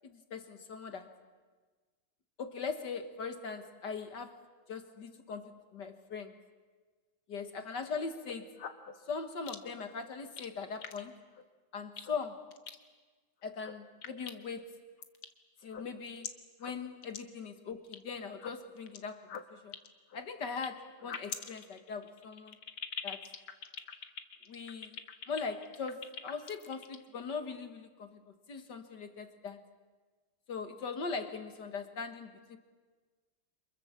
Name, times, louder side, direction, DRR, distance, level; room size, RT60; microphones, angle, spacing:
voice 1, 0.0-1.1 2.4-4.4 4.7-6.3 7.3-8.5 9.1-11.2 11.7-12.5 13.4-14.8 15.6-16.3 16.6-19.7 20.1-22.6 23.0-23.3 24.5-25.0 25.3-28.2 28.5-29.6 30.5-32.6, left 5 dB, 55° left, 8 dB, 2.0 m, -40 dB
sound 1, 8.1-8.9 9.5-9.8 10.2-10.5 10.8-11.0 11.4-11.5 12.0-12.1 12.5-12.8 13.4-13.7 14.0-14.6 15.0-15.3 15.6-16.3 16.6-16.7 17.0-17.2 17.4-18.0 18.3-19.0 19.3-20.7 21.0-27.0, left 7 dB, 75° left, 2.3 m, -43 dB
29.5 x 27.5 x 7.4 m, 1.4 s
omnidirectional pair, 2.4 m